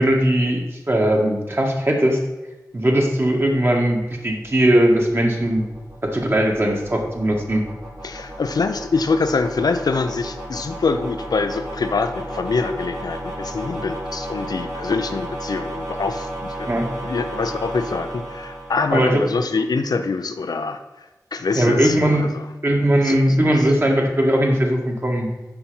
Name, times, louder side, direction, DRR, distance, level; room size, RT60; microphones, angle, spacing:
voice 1, 0.0-2.2 2.7-5.7 6.0-7.6 16.7-17.0 18.9-19.2 21.5-22.2 22.6-25.3, right 1 dB, 35° right, 1 dB, 1.7 m, -19 dB
sound 1, 4.0-19.5, right 1 dB, 80° right, 3.1 m, -34 dB
voice 2, 8.0-16.7 17.0-20.8 21.3-22.5 23.0-23.7, left 4 dB, 75° left, 8 dB, 0.6 m, -24 dB
6.8 x 5.8 x 5.6 m, 1.1 s
cardioid pair, 55°, 7 cm